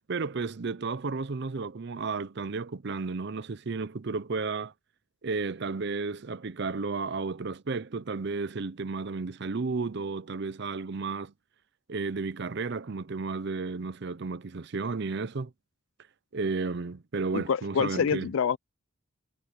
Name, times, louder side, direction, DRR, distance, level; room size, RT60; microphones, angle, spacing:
voice 1, 0.1-4.7 5.2-11.3 11.9-15.5 16.3-18.3, right 4 dB, 55° right, 0.6 m, -33 dB
voice 2, 17.3-18.6, left 7 dB, 70° left, 0.4 m, -26 dB
head